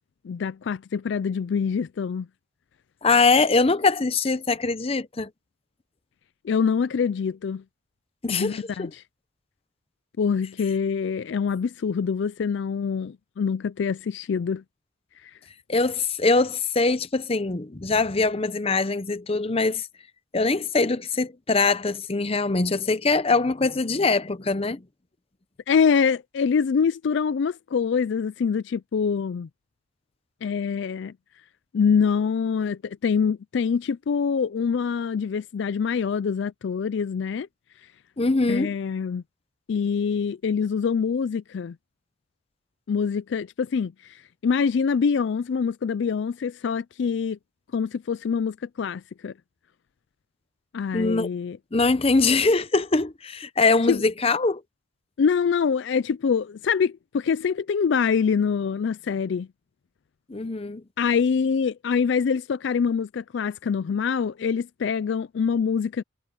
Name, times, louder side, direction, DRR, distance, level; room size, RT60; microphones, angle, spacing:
voice 1, 0.2-2.3 6.4-7.6 8.3-9.0 10.2-14.6 15.2-15.3 25.7-29.5 30.4-31.1 31.7-37.5 38.5-39.2 39.7-41.8 42.9-47.4 47.7-49.3 50.7-51.6 53.9-54.0 55.2-59.5 61.0-66.0, left 6 dB, 60° left, 0.3 m, -25 dB
voice 2, 3.0-5.3 8.2-8.9 15.7-19.9 20.3-24.8 38.2-38.7 50.9-51.3 51.7-54.6 60.3-60.8, left 3 dB, 30° left, 0.7 m, -23 dB
head